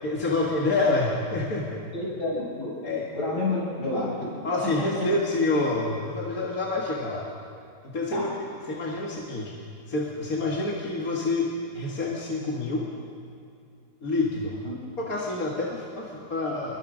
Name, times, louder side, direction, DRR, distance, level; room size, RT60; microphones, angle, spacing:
voice 1, 0.0-1.8 2.8-3.0 4.4-7.3 7.8-8.3 8.7-9.5 9.9-12.9 14.0-14.5 15.0-16.8, left 2 dB, 55° left, -3 dB, 2.5 m, -27 dB
voice 2, 1.9-2.7 3.1-4.4 4.8-4.9 8.1-8.3 14.6-14.7, left 2 dB, 75° left, -4 dB, 7.4 m, -29 dB
28.5 x 22.0 x 5.2 m, 2.4 s
omnidirectional pair, 1.8 m